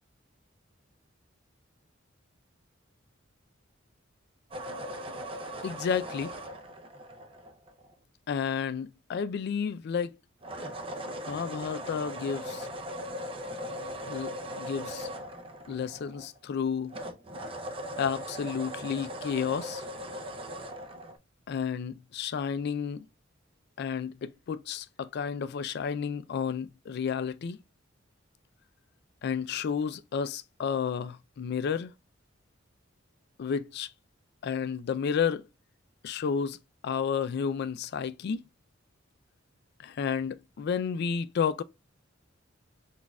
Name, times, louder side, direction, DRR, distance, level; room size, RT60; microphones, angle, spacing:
sound 1, 4.5-7.9 10.4-16.6 16.9-21.2, equal, 30° right, 0.5 m, -39 dB
voice 1, 5.6-6.3 8.3-10.1 11.3-12.7 14.1-15.1 15.7-17.0 18.0-19.8 21.5-23.0 23.8-27.6 29.2-31.9 33.4-33.9 34.4-35.4 36.0-36.6 36.8-38.4 39.8-41.6, left 6 dB, 55° left, 0.3 m, -31 dB
6.0 x 2.4 x 2.2 m
head